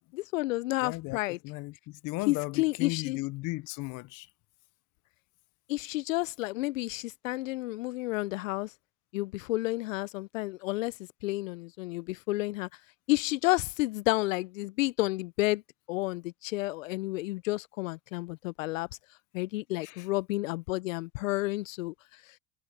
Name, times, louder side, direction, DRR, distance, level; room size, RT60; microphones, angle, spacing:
voice 1, 0.1-1.4 2.3-3.2 5.7-8.7 9.1-12.7 13.1-15.6 15.9-18.9 19.3-22.4, left 20 dB, 80° left, 0.6 m, -31 dB
voice 2, 0.8-1.2 1.4-4.3 19.8-20.1, left 22 dB, 50° left, 0.8 m, -36 dB
hypercardioid pair, 90°, 39 cm